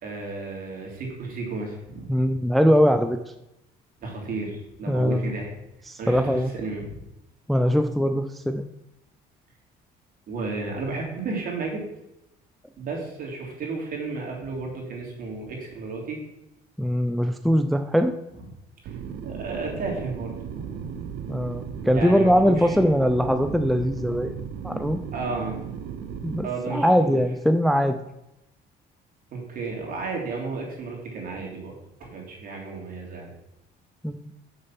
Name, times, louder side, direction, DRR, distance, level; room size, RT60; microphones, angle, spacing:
voice 1, 0.0-2.3 4.0-5.5 6.0-7.0 10.3-11.8 12.8-16.2 18.8-18.9 19.2-21.1 21.9-22.8 25.1-25.6 26.4-27.2 29.3-31.7 32.0-33.3, right 3 dB, 55° right, -1 dB, 3.2 m, -33 dB
voice 2, 2.1-3.2 4.9-5.3 5.9-6.5 7.5-8.6 16.8-18.1 21.3-24.3 24.6-25.0 26.2-28.0 34.0-34.2, equal, ahead, 7 dB, 0.5 m, -21 dB
sound 1, 18.8-26.4, right 7 dB, 75° right, 0.8 m, -36 dB
6.6 x 6.6 x 5.9 m, 0.88 s
cardioid pair, 110°, 17 cm